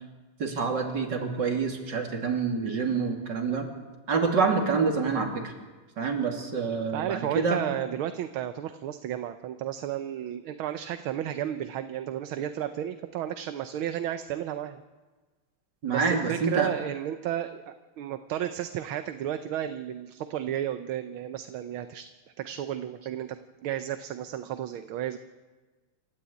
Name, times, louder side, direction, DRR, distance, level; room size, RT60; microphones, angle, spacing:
voice 1, 0.4-3.7 4.1-5.5 6.0-7.6 15.8-16.7, right 5 dB, 55° right, 3 dB, 3.3 m, -27 dB
voice 2, 6.9-14.8 15.9-22.0 22.4-25.2, right 11 dB, 75° right, 9 dB, 1.6 m, -33 dB
27.5 x 13.0 x 8.4 m, 1.3 s
omnidirectional pair, 2.4 m